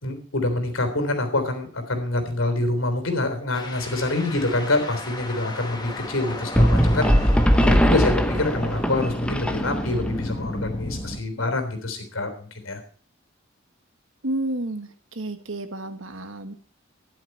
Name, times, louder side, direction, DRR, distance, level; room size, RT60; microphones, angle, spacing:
voice 1, 0.0-12.8, left 2 dB, 85° left, 7 dB, 3.6 m, -26 dB
sound 1, 3.5-11.2, left 1 dB, 20° left, 1.9 m, -33 dB
sound 2, 6.6-10.1, equal, 5° left, 1.1 m, -20 dB
voice 2, 14.2-16.5, right 1 dB, 75° right, 9 dB, 1.5 m, -31 dB
12.5 x 11.0 x 4.5 m, 0.42 s
head